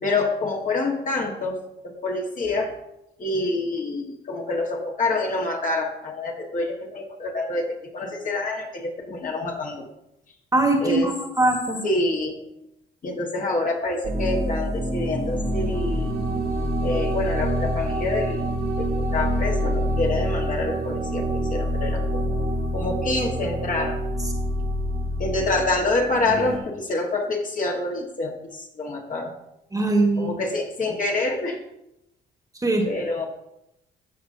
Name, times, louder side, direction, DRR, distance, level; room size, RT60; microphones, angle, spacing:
voice 1, 0.0-2.8 3.2-9.9 10.8-11.1 11.8-12.4 13.0-16.2 16.8-18.5 18.8-22.3 22.7-24.0 25.2-29.3 30.2-31.6 32.8-33.3, left 2 dB, 40° left, 0 dB, 1.5 m, -27 dB
voice 2, 10.5-11.8 29.7-30.3 32.6-32.9, right 2 dB, 15° right, 3 dB, 1.4 m, -21 dB
sound 1, 14.0-26.6, equal, 50° right, 1.5 m, -26 dB
14.0 x 5.1 x 2.7 m, 0.85 s
cardioid pair, 90°, 20 cm